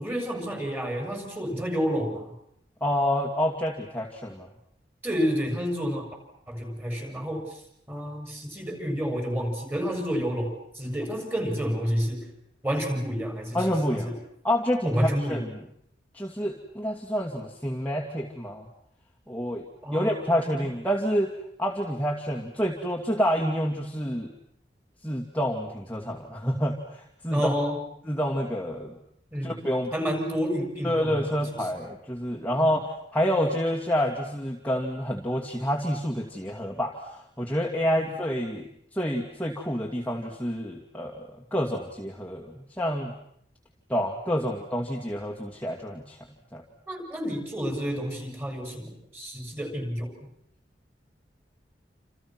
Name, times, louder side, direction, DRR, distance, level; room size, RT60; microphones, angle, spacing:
voice 1, 0.0-2.3 5.0-6.1 6.5-7.6 7.9-12.3 12.6-13.7 13.9-14.2 14.8-15.4 19.8-20.6 27.3-27.8 29.3-29.6 29.9-31.6 32.6-32.8 37.9-38.1 44.4-44.5 46.9-50.1, equal, 10° right, 3 dB, 7.2 m, -30 dB
voice 2, 2.8-4.5 13.5-14.2 14.4-15.5 16.1-18.7 19.3-21.3 21.6-24.3 25.0-27.5 28.1-29.0 29.4-29.9 30.8-43.2 43.9-46.2 46.5-46.6, equal, 10° left, -2 dB, 2.5 m, -28 dB
29.0 x 28.5 x 6.2 m, 0.71 s
head